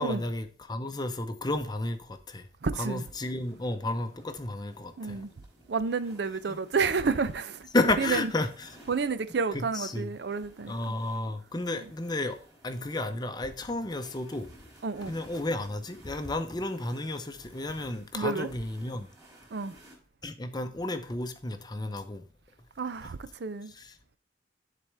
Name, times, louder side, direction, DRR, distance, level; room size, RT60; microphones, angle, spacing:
voice 1, 0.0-2.5 2.8-5.2 6.5-6.6 7.7-8.8 9.5-10.1 10.7-12.4 12.6-14.5 15.0-19.1 20.2-22.2 23.7-23.9, left 2 dB, 25° left, 0.7 m, -32 dB
voice 2, 2.6-3.0 5.0-5.3 5.7-7.7 8.0-8.2 8.9-10.7 14.8-15.1 18.1-18.5 19.5-19.7 22.8-23.7, right 4 dB, 65° right, 0.5 m, -30 dB
sound 1, 2.7-20.0, right 1 dB, 20° right, 3.1 m, -57 dB
10.5 x 4.2 x 3.3 m
head